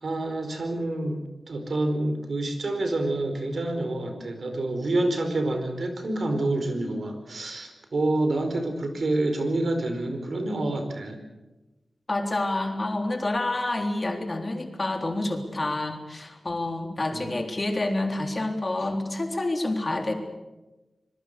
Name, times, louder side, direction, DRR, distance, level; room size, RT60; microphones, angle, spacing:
voice 1, 0.0-1.2 1.5-11.2 17.1-17.4, right 2 dB, 65° right, 6 dB, 4.9 m, -27 dB
voice 2, 12.1-20.1, left 2 dB, 35° left, 4 dB, 3.7 m, -28 dB
26.0 x 21.5 x 6.9 m, 1.1 s
wide cardioid pair, 95°, 0 cm